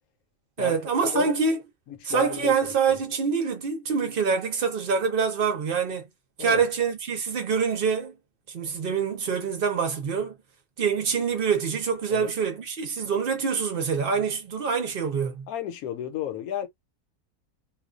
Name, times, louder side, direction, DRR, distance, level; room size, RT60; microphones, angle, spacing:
voice 1, 0.6-1.6 2.0-6.1 6.4-8.1 8.5-10.4 10.8-15.5, right 6 dB, 55° right, 0.6 m, -25 dB
voice 2, 1.9-3.0 6.4-6.6 12.1-12.3 15.5-16.7, left 10 dB, 75° left, 1.0 m, -33 dB
2.4 x 2.3 x 2.3 m
omnidirectional pair, 1.6 m